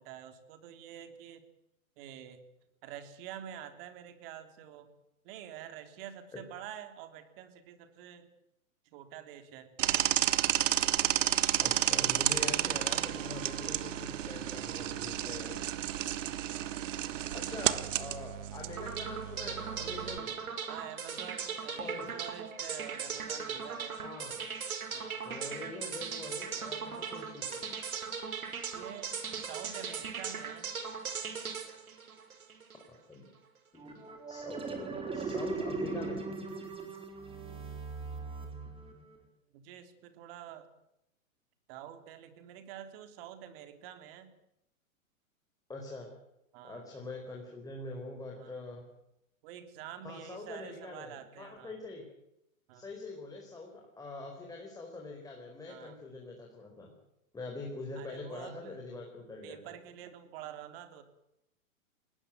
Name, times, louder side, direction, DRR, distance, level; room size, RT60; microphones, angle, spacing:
voice 1, 0.0-1.4 2.0-2.4 2.8-4.9 5.2-8.3 8.8-9.7 20.7-24.0 24.9-25.2 28.7-30.7 39.5-40.7 41.7-44.3 46.5-46.8 48.4-48.7 49.4-51.8 52.7-52.9 55.7-56.0 58.0-58.8 59.4-61.0, right 10 dB, 40° right, 9 dB, 3.6 m, -47 dB
sound 1, 9.8-20.2, right 12 dB, 60° right, 1.6 m, -31 dB
voice 2, 11.6-15.7 17.3-20.3 21.8-22.1 24.0-24.4 25.2-27.6 33.1-33.3 33.7-36.3 45.7-46.1 46.6-48.8 50.0-52.0 52.7-56.9 57.3-59.7, left 2 dB, 10° left, 0 dB, 4.6 m, -44 dB
sound 2, 18.8-32.9, right 6 dB, 80° right, 5.3 m, -39 dB
sound 3, 33.8-39.2, right 3 dB, 15° right, 4.4 m, -39 dB
21.5 x 19.0 x 9.3 m, 0.84 s
hypercardioid pair, 135°, 42 cm